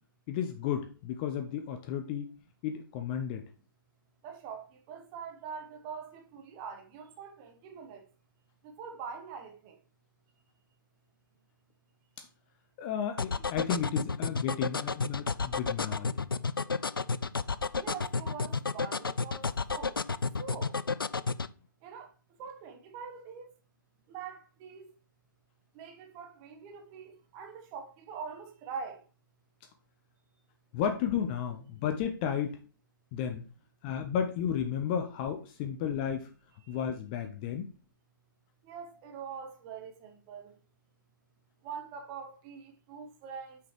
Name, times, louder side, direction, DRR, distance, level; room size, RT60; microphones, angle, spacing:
voice 1, 0.3-2.3 2.6-3.5 12.8-16.2 30.7-32.6 33.1-33.4 33.8-36.3 36.7-37.7, left 8 dB, 25° left, 0.5 m, -33 dB
voice 2, 4.2-8.0 8.6-9.8 17.8-20.0 20.4-20.7 21.8-22.1 22.4-23.5 24.1-24.9 25.7-29.0 38.6-40.5 41.6-43.6, right 6 dB, 25° right, 1.0 m, -43 dB
sound 1, 13.2-21.5, left 4 dB, 85° left, 0.4 m, -31 dB
5.6 x 3.9 x 4.5 m
figure-of-eight pair, 125°, 11 cm